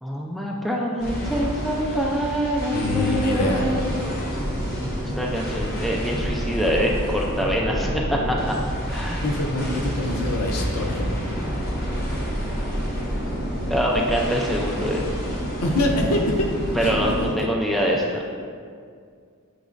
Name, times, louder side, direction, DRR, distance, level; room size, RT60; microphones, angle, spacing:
voice 1, 0.0-3.9 5.0-8.6 8.9-9.2 13.7-15.0 16.7-18.2, equal, ahead, -3 dB, 0.3 m, -25 dB
sound 1, 1.0-17.3, equal, 40° left, 1.0 m, -28 dB
voice 2, 2.7-3.7 9.2-11.2 15.6-16.5 16.8-17.3, left 1 dB, 85° left, 1 dB, 0.6 m, -25 dB
6.1 x 2.9 x 2.5 m, 2.1 s
head